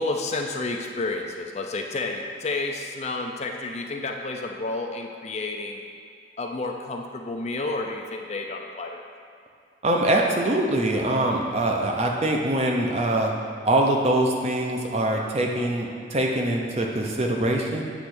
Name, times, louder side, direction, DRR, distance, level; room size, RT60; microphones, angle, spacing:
voice 1, 0.0-5.8 6.4-9.0, left 2 dB, 35° left, 2 dB, 0.5 m, -30 dB
voice 2, 9.8-13.3 13.6-17.8, right 1 dB, 35° right, 0 dB, 0.7 m, -23 dB
8.3 x 3.2 x 6.1 m, 2.4 s
head